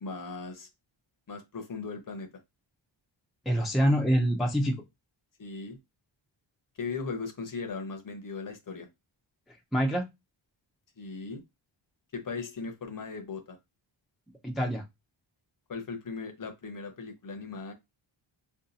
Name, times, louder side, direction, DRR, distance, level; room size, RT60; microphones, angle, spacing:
voice 1, 0.0-0.7 1.3-2.3 5.4-5.8 6.8-8.9 11.0-11.4 12.1-13.6 15.7-17.7, left 4 dB, 45° left, 0.7 m, -38 dB
voice 2, 3.5-4.8 9.7-10.1 14.4-14.8, equal, ahead, 0.4 m, -25 dB
2.6 x 2.3 x 3.9 m
wide cardioid pair, 150°, 48 cm